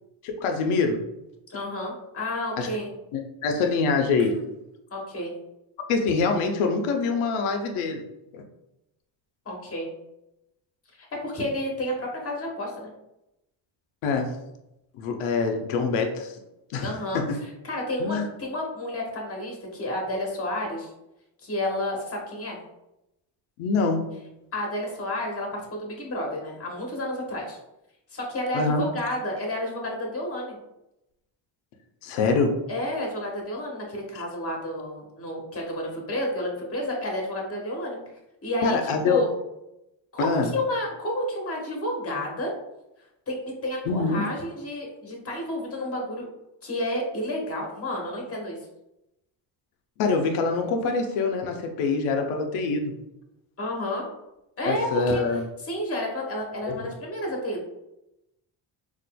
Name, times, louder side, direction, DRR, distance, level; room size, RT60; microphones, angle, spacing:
voice 1, 0.2-1.0 2.6-2.7 3.4-4.4 5.9-8.0 8.3-8.4 14.0-14.4 14.9-16.4 16.7-16.9 17.1-17.4 18.0-18.3 23.6-24.1 28.5-28.9 32.0-32.6 38.6-39.2 40.2-40.5 43.9-44.2 50.0-52.9 54.6-55.4 56.7-56.8, left 4 dB, 85° left, 4 dB, 0.7 m, -24 dB
voice 2, 1.5-2.9 4.2-4.5 4.9-5.3 9.4-9.9 11.0-12.9 16.8-17.2 17.6-20.9 21.4-22.6 24.5-27.6 28.1-30.6 32.7-38.0 38.4-39.3 40.1-42.5 43.3-46.3 46.6-48.6 53.6-54.0 54.6-55.2 55.6-57.6, left 1 dB, 30° left, 0 dB, 1.1 m, -31 dB
4.1 x 2.5 x 2.2 m, 0.89 s
cardioid pair, 105°, 48 cm